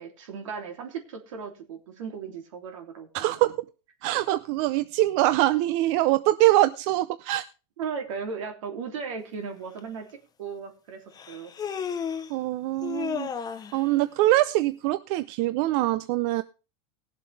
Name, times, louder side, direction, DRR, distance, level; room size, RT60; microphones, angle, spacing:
voice 1, 0.0-3.3 7.8-10.0 10.4-11.5, right 6 dB, 85° right, 3 dB, 3.0 m, -36 dB
voice 2, 3.1-3.5 4.0-7.4 12.3-13.3 13.7-16.4, right 16 dB, 60° right, 13 dB, 0.6 m, -23 dB
Human voice, 9.8-9.9 11.2-12.4 12.8-13.8, left 7 dB, 25° left, 0.8 m, -33 dB
18.5 x 7.5 x 3.4 m, 0.32 s
supercardioid pair, 120°, 16 cm